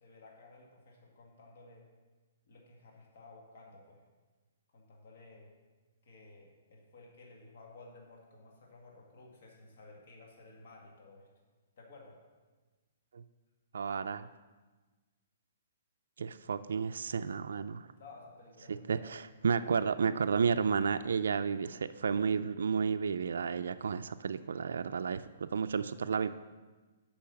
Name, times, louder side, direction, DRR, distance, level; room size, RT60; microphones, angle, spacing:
voice 1, 0.0-1.9 2.5-4.0 4.7-5.5 6.0-11.3 11.8-12.2 18.0-19.0, left 3 dB, 55° left, -1 dB, 1.8 m, -55 dB
voice 2, 13.7-14.3 16.2-17.9 18.7-26.3, right 6 dB, 85° right, 9 dB, 0.3 m, -32 dB
8.5 x 5.7 x 5.8 m, 1.3 s
hypercardioid pair, 165°, 0 cm